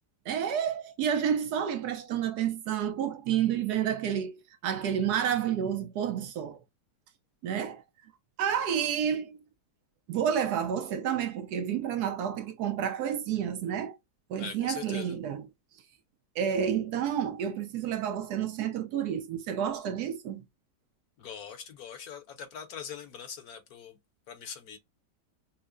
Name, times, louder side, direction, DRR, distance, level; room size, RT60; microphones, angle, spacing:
voice 1, 0.3-4.3 4.6-6.6 7.4-7.8 8.4-9.4 10.1-14.0 14.3-15.5 16.4-20.4, right 9 dB, 75° right, 1.1 m, -30 dB
voice 2, 14.4-15.1 21.2-24.0 24.3-24.8, left 7 dB, 65° left, 1.2 m, -42 dB
5.5 x 2.1 x 2.4 m
omnidirectional pair, 1.8 m